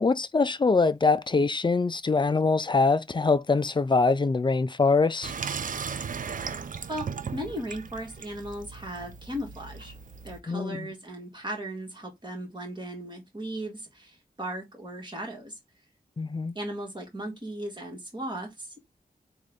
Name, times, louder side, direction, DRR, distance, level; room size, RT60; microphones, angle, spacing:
voice 1, 0.0-5.3 10.5-10.9 16.2-16.5, left 4 dB, 30° left, 0.3 m, -23 dB
Water tap faucet / Sink (filling or washing), 5.2-10.4, right 6 dB, 55° right, 0.4 m, -37 dB
voice 2, 7.3-9.9 10.2-15.6 16.5-18.8, right 1 dB, 30° right, 1.6 m, -37 dB
3.8 x 2.4 x 3.5 m
wide cardioid pair, 80°, 17 cm